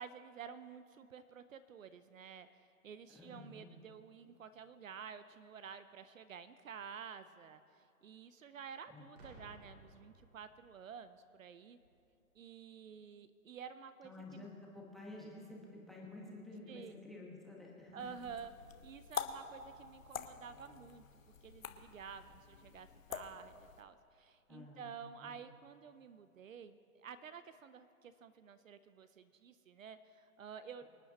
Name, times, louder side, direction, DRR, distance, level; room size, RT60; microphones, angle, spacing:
voice 1, 0.0-2.5 2.8-7.6 8.0-11.8 12.4-14.5 16.7-17.0 17.9-18.5 18.8-21.0 21.4-30.8, right 7 dB, 60° right, 13 dB, 0.7 m, -51 dB
voice 2, 3.1-3.7 8.9-9.1 14.0-18.1 24.5-25.4, left 2 dB, ahead, -2 dB, 1.1 m, -51 dB
Boom, 9.2-10.9 11.8-12.0, right 1 dB, 45° right, 3.1 m, -58 dB
sound 1, 18.0-23.8, left 7 dB, 60° left, 1.0 m, -47 dB
25.0 x 9.1 x 2.9 m, 2.5 s
hypercardioid pair, 145°, 44 cm